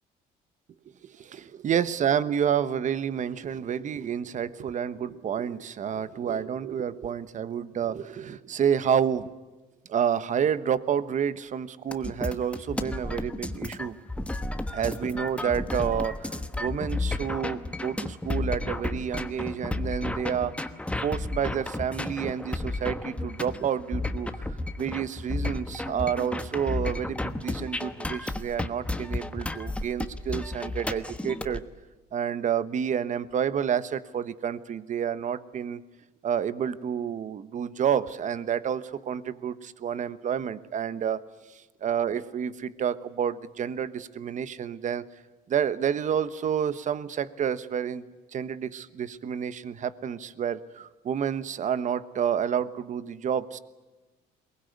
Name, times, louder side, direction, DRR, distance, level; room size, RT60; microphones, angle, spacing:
voice 1, 1.0-9.3 9.9-14.0 14.7-20.5 21.0-24.5 24.8-31.6 32.1-35.8 36.2-41.2 41.5-45.0 45.5-48.0 48.3-53.6, right 8 dB, 45° right, 14 dB, 1.2 m, -29 dB
sound 1, 11.9-31.6, left 2 dB, 5° left, 1.2 m, -32 dB
22.5 x 20.0 x 9.5 m, 1.2 s
cardioid pair, 110°, 17 cm